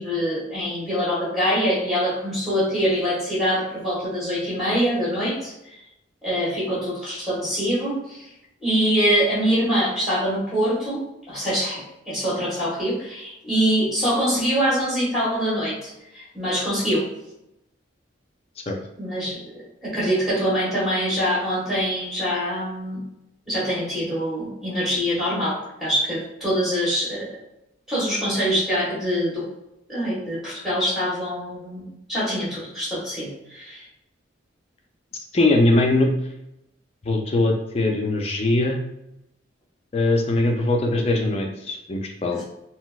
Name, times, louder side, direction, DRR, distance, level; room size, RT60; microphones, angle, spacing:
voice 1, 0.0-5.5 6.2-8.3 8.6-17.1 19.0-23.0 23.5-27.3 27.9-29.5 29.9-33.9 42.3-42.4, equal, ahead, -8 dB, 1.4 m, -24 dB
voice 2, 35.3-36.1 37.1-38.8 39.9-42.4, left 2 dB, 30° left, 1 dB, 0.4 m, -21 dB
4.0 x 2.0 x 2.3 m, 0.86 s
head